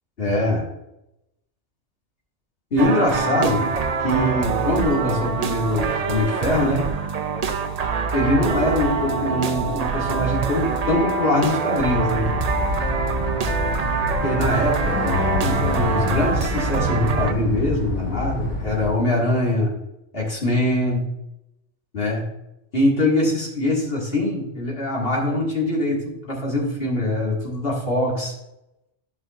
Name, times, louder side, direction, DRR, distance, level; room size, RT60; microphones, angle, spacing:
voice 1, 0.2-0.6 2.7-3.7 4.0-6.9 8.1-12.3 14.2-15.0 15.4-19.7 20.1-21.1 21.9-22.3 22.7-28.3, left 1 dB, 50° left, -4 dB, 2.1 m, -23 dB
sound 1, 2.8-17.3, right 5 dB, 50° right, 0.5 m, -25 dB
sound 2, 11.8-18.9, left 3 dB, 90° left, 1.9 m, -27 dB
12.0 x 5.7 x 2.4 m, 0.88 s
omnidirectional pair, 1.2 m